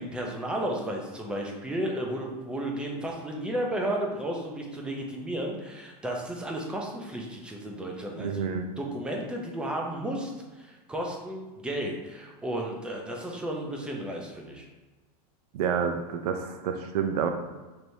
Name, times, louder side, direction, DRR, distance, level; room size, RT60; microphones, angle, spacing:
voice 1, 0.0-8.4 8.8-14.7, right 1 dB, 5° right, 0 dB, 0.4 m, -33 dB
voice 2, 8.2-8.7 15.5-17.3, right 7 dB, 75° right, 6 dB, 0.5 m, -28 dB
4.5 x 3.2 x 2.7 m, 1.2 s
supercardioid pair, 160°, 20 cm